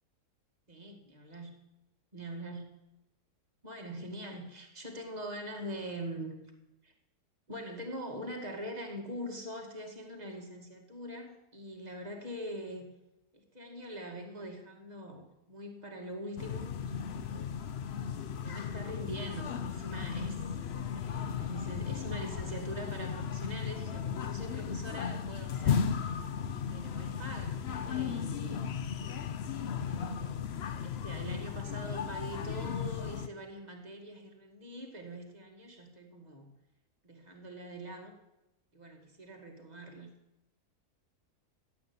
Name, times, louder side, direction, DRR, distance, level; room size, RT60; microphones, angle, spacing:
voice 1, 0.7-1.5 2.1-2.7 3.6-6.4 6.8-6.9 7.5-12.9 13.3-17.3 18.3-20.4 21.0-25.9 26.7-28.7 29.7-36.5 37.0-38.1 38.7-40.1, right 1 dB, 25° right, 2 dB, 2.2 m, -43 dB
sound 1, 16.4-33.3, left 7 dB, 55° left, 0.7 m, -35 dB
14.5 x 8.5 x 9.6 m, 0.94 s
omnidirectional pair, 1.8 m